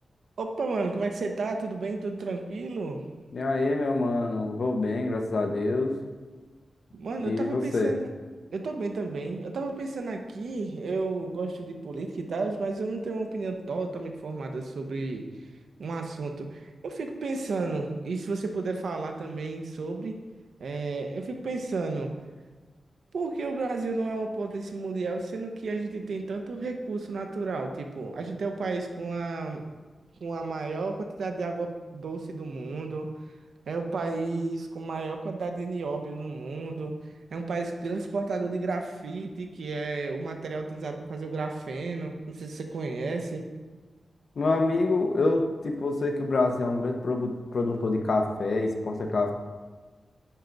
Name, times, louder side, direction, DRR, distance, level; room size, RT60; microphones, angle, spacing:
voice 1, 0.4-3.0 6.9-8.1 8.5-15.3 15.8-20.2 20.6-22.1 23.1-29.6 30.2-33.1 33.7-36.9 37.3-43.5, right 3 dB, 80° right, 4 dB, 0.8 m, -32 dB
voice 2, 3.3-5.9 7.2-7.9 44.4-49.3, left 2 dB, 55° left, 3 dB, 0.9 m, -26 dB
10.5 x 4.6 x 4.0 m, 1.3 s
wide cardioid pair, 135°, 0 cm